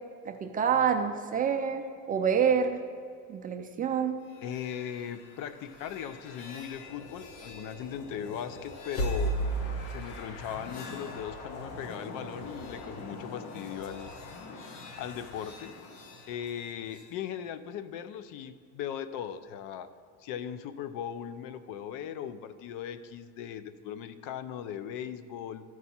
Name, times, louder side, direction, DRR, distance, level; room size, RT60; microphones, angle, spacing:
voice 1, 0.3-2.8 3.3-4.2, right 7 dB, 25° right, 5 dB, 0.4 m, -27 dB
sound 1, 4.3-17.1, equal, 80° left, 1.1 m, -39 dB
voice 2, 4.4-9.4 9.9-14.1 15.0-15.7 16.3-19.9 20.2-25.6, left 9 dB, 65° left, 13 dB, 0.5 m, -38 dB
13.0 x 4.7 x 4.2 m, 2.2 s
cardioid pair, 140°, 35 cm